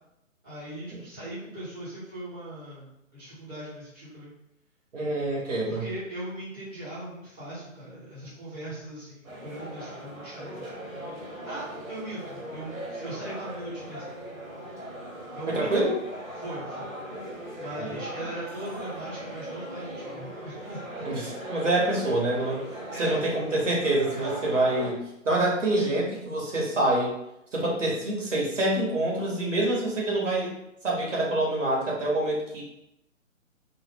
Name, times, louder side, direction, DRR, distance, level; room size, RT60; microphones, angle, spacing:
voice 1, 0.4-4.3 5.6-10.7 11.3-14.2 15.3-15.8 16.4-16.9 17.2-21.0 22.9-23.4, right 1 dB, 25° right, -12 dB, 0.9 m, -39 dB
voice 2, 4.9-5.8 15.5-16.0 17.8-18.0 21.0-22.6 23.0-27.1 27.5-30.5 30.8-32.6, right 2 dB, 65° right, -3 dB, 1.1 m, -26 dB
sound 1, 9.2-24.9, right 1 dB, 80° right, 1.3 m, -39 dB
2.5 x 2.0 x 3.3 m, 0.85 s
figure-of-eight pair, 135°, 40 cm